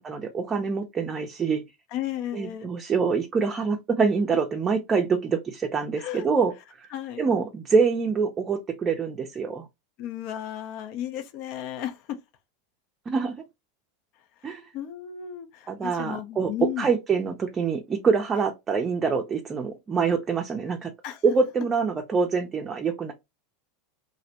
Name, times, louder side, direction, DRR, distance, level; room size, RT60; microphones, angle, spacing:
voice 1, 0.0-1.6 2.3-6.5 6.8-6.9 7.2-9.7 13.1-13.4 14.4-14.6 15.7-16.5 16.8-20.9 21.2-23.1, right 5 dB, 25° right, 0.5 m, -25 dB
voice 2, 1.9-2.7 6.0-6.3 6.9-7.2 10.0-12.2 14.4-16.9 21.0-21.2, left 11 dB, 55° left, 0.5 m, -34 dB
2.5 x 2.0 x 2.7 m
hypercardioid pair, 105°, 0 cm